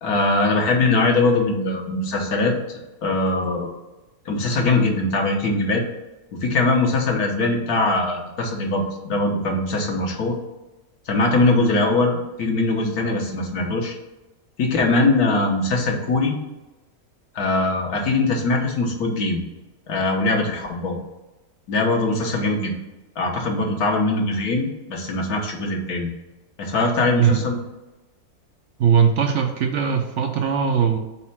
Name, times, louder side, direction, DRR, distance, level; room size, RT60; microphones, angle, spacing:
voice 1, 0.0-2.5 3.0-3.7 4.2-5.8 6.3-10.3 11.1-14.0 14.6-16.4 17.3-19.4 19.9-21.0 21.7-22.7 23.2-26.1 26.6-27.6, left 2 dB, 80° left, 1 dB, 1.6 m, -21 dB
voice 2, 27.2-27.5 28.8-31.0, right 7 dB, 65° right, 4 dB, 0.8 m, -20 dB
4.3 x 4.2 x 5.7 m, 1.0 s
omnidirectional pair, 1.6 m